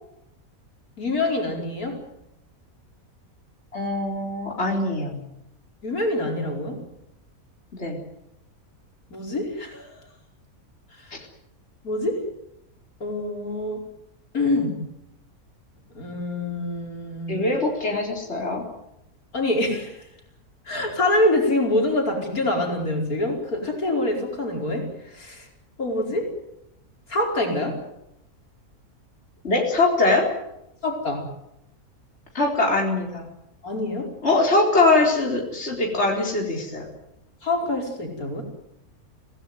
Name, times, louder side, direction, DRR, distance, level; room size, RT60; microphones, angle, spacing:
voice 1, 1.0-2.0 5.8-6.8 9.1-10.0 11.8-12.2 13.0-13.9 14.3-14.8 16.0-17.5 19.3-20.0 20.7-24.9 25.1-25.4 25.8-26.3 27.1-27.8 30.8-31.3 33.6-34.1 37.4-38.4, left 1 dB, 80° left, 1 dB, 5.4 m, -25 dB
voice 2, 3.7-5.2 7.7-8.0 17.3-18.6 29.4-30.3 32.3-33.2 34.2-36.9, left 2 dB, 45° left, 0 dB, 4.5 m, -22 dB
25.5 x 17.5 x 9.5 m, 0.84 s
omnidirectional pair, 1.5 m